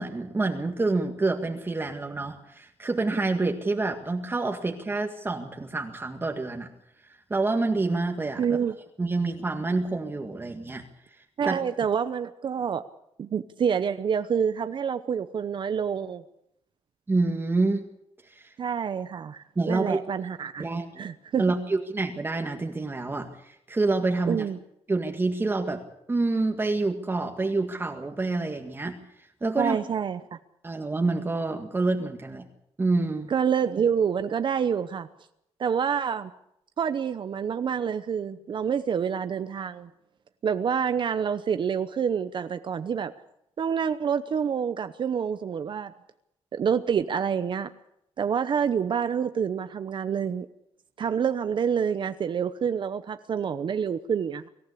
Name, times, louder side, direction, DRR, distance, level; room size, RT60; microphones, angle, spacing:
voice 1, 0.0-6.7 7.3-8.4 9.0-10.8 11.5-11.6 17.1-17.8 18.3-18.5 19.6-20.0 20.6-21.0 21.4-24.4 24.9-25.8 26.1-29.8 30.6-32.5 32.8-33.3, right 3 dB, 20° right, 3 dB, 1.9 m, -27 dB
voice 2, 8.4-8.7 11.4-12.8 13.2-16.2 18.6-20.7 21.0-21.4 24.3-24.6 29.6-30.4 33.3-35.1 35.6-36.3 36.8-39.9 40.4-43.1 43.6-45.9 46.5-47.7 48.2-50.5 51.0-54.5, right 7 dB, 45° right, 11 dB, 0.9 m, -27 dB
24.5 x 15.0 x 8.5 m, 0.79 s
wide cardioid pair, 155°, 11 cm